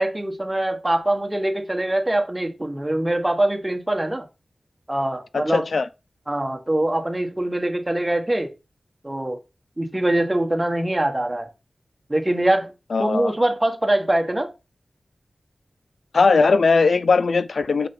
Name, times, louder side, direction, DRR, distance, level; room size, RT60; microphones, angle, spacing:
voice 1, 0.0-4.3 4.9-5.6 6.3-8.5 9.0-9.4 9.8-11.5 12.1-12.7 13.0-14.5, right 1 dB, 15° right, 1.6 m, -23 dB
voice 2, 5.3-5.9 12.9-13.3 16.1-17.9, left 4 dB, 80° left, 0.4 m, -19 dB
6.9 x 4.8 x 5.6 m
wide cardioid pair, 100°, 0 cm